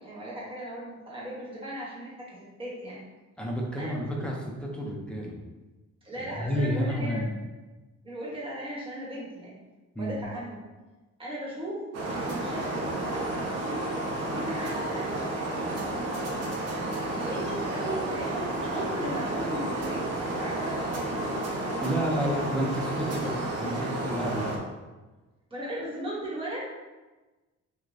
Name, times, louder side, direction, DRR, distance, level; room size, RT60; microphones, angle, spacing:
voice 1, 0.0-3.1 3.8-4.3 6.0-7.2 8.0-9.6 10.0-10.6 11.2-13.3 13.6-15.1 15.5-16.1 17.2-21.2 22.2-22.3 25.5-26.9, right 1 dB, 20° right, -6 dB, 1.1 m, -37 dB
voice 2, 3.4-5.3 6.2-7.3 10.0-10.2 21.8-24.6, equal, 5° left, -2 dB, 0.5 m, -30 dB
sound 1, 11.9-24.6, right 1 dB, 60° right, 0.7 m, -31 dB
6.2 x 2.2 x 2.6 m, 1.2 s
cardioid pair, 175°, 29 cm